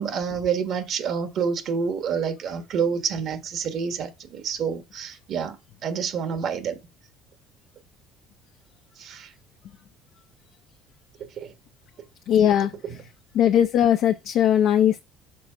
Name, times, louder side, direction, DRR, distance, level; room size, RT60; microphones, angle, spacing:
voice 1, 0.0-5.6 5.8-6.8 9.0-9.3 11.4-11.5, right 6 dB, 55° right, 1.3 m, -28 dB
voice 2, 12.3-12.7 13.3-15.0, left 10 dB, 65° left, 0.6 m, -19 dB
6.1 x 4.3 x 5.0 m
cardioid pair, 110°, 0 cm